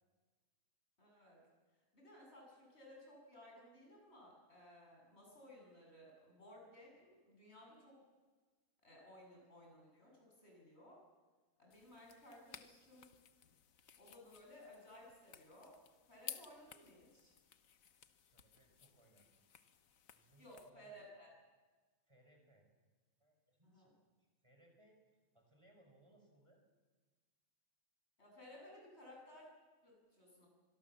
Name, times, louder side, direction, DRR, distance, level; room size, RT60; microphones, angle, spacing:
voice 1, 1.0-1.4 1.9-8.0 8.8-11.0 11.6-13.1 14.0-15.7 16.1-17.3 20.4-21.3 23.6-23.9 28.2-29.5 29.8-30.5, left 1 dB, 50° left, -1 dB, 8.3 m, -59 dB
sound 1, 11.7-20.7, left 8 dB, 75° left, 1.5 m, -57 dB
voice 2, 18.3-19.3 20.1-20.9 22.1-22.7 23.2-23.9 24.4-25.0 25.3-26.6, right 1 dB, 20° right, 2 dB, 5.6 m, -68 dB
25.0 x 22.0 x 7.4 m, 1.3 s
omnidirectional pair, 1.4 m